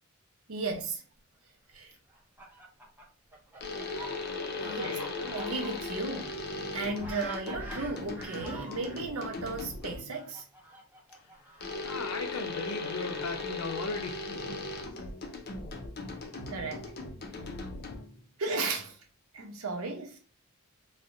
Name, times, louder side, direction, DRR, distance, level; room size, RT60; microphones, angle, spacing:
voice 1, 0.5-1.0 1.7-1.9 4.6-6.4 6.7-10.4 16.5-16.9 18.4-19.0 19.3-20.2, right 3 dB, 80° right, 0.7 m, -35 dB
Fowl, 2.1-9.0 9.8-11.9, right 1 dB, 10° right, 0.5 m, -46 dB
sound 1, 3.6-10.2 11.6-18.2, left 3 dB, 45° left, 0.5 m, -38 dB
voice 2, 4.6-5.1 11.8-14.6, left 3 dB, 85° left, 0.7 m, -38 dB
4.1 x 2.1 x 2.5 m
head